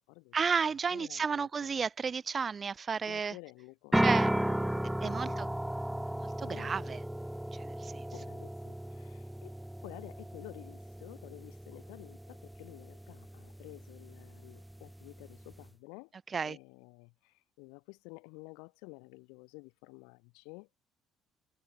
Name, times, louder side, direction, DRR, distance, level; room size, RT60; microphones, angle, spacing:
voice 1, 0.3-3.3 4.0-4.3 5.0-5.5 6.2-7.0 7.5-8.1 16.3-16.6, right 6 dB, 35° right, 1.6 m, -33 dB
voice 2, 0.9-1.7 3.0-4.1 5.0-5.6 6.4-6.9 8.1-9.5 9.8-16.1 16.4-20.7, left 34 dB, 90° left, 6.5 m, -51 dB
sound 1, 3.9-15.7, right 1 dB, 5° right, 0.6 m, -35 dB
supercardioid pair, 85°, 0 cm